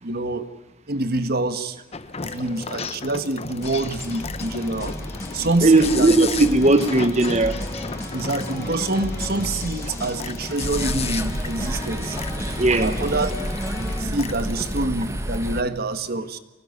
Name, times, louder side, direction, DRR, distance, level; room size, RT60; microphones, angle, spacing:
voice 1, 0.0-0.5 0.9-1.8 2.2-5.0 5.3-6.1 8.1-12.2 12.5-13.3 14.0-16.4, right 2 dB, 50° right, 10 dB, 1.5 m, -26 dB
sound 1, 1.9-14.8, left 5 dB, 30° left, 0.8 m, -35 dB
sound 2, 3.6-14.0, left 1 dB, 15° left, 5.5 m, -33 dB
voice 2, 5.6-7.6 12.6-12.9, right 2 dB, 35° right, 7 dB, 1.1 m, -17 dB
sound 3, 10.6-15.6, right 1 dB, 15° right, 1.4 m, -30 dB
24.5 x 18.5 x 9.7 m, 1.1 s
head